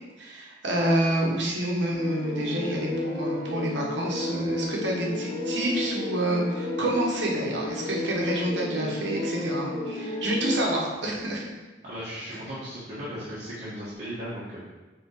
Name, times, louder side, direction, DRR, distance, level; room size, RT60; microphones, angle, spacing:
voice 1, 0.2-11.5, right 1 dB, 85° right, -2 dB, 1.2 m, -28 dB
sound 1, 1.9-11.2, left 1 dB, 40° left, 1.1 m, -32 dB
voice 2, 11.8-14.6, equal, 40° right, -10 dB, 1.6 m, -36 dB
5.7 x 3.7 x 4.8 m, 1.2 s
head